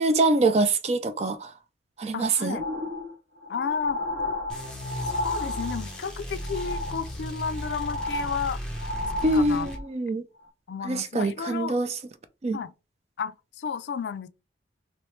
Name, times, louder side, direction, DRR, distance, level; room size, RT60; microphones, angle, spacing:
voice 1, 0.0-1.5 2.0-2.6 9.2-10.2 10.8-11.9 12.4-12.6, right 2 dB, 35° right, 0.4 m, -24 dB
voice 2, 2.1-2.7 3.5-4.0 5.2-8.6 9.2-9.7 10.7-11.8 12.5-12.7 13.2-14.3, left 6 dB, 70° left, 0.4 m, -32 dB
sound 1, 2.4-6.1 6.4-7.1 7.4-9.9 10.4-10.5, left 1 dB, 85° right, 1.5 m, -33 dB
sound 2, 4.5-9.8, equal, 5° left, 0.9 m, -36 dB
3.1 x 2.9 x 3.2 m
head